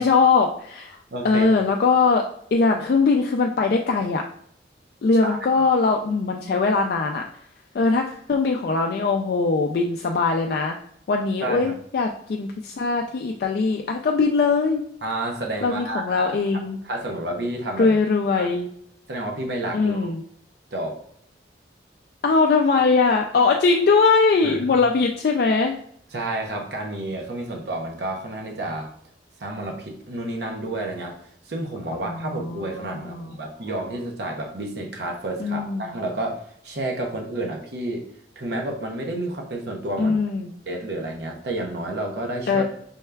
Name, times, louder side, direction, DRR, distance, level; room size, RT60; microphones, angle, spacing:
voice 1, 0.0-1.0 1.2-4.2 5.0-7.2 7.7-10.8 11.1-14.8 15.6-16.8 17.8-18.7 19.7-20.2 22.2-25.7 31.9-33.4 35.4-36.0 40.0-40.5 42.5-42.6, left 4 dB, 55° left, 2 dB, 0.3 m, -21 dB
voice 2, 1.1-1.5 5.2-5.3 11.4-11.7 15.0-16.4 16.8-18.0 18.4-18.5 19.1-20.1 20.7-21.0 24.4-24.6 26.1-28.9 29.4-31.2 31.5-38.1 38.4-40.2 40.7-42.6, right 1 dB, 65° right, 1 dB, 0.7 m, -30 dB
5.3 x 2.3 x 3.2 m, 0.66 s
head